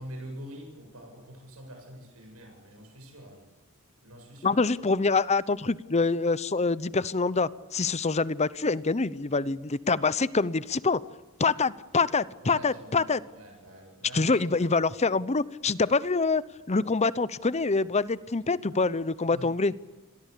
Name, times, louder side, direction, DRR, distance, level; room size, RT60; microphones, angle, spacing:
voice 1, 0.0-3.5 4.0-4.6 12.0-12.1 12.4-14.4 19.3-19.5, equal, 90° right, 2 dB, 7.8 m, -45 dB
voice 2, 4.4-11.0 11.4-13.2 14.1-16.4 16.7-19.7, left 4 dB, 30° left, 18 dB, 0.8 m, -25 dB
28.5 x 22.0 x 8.5 m, 1.2 s
head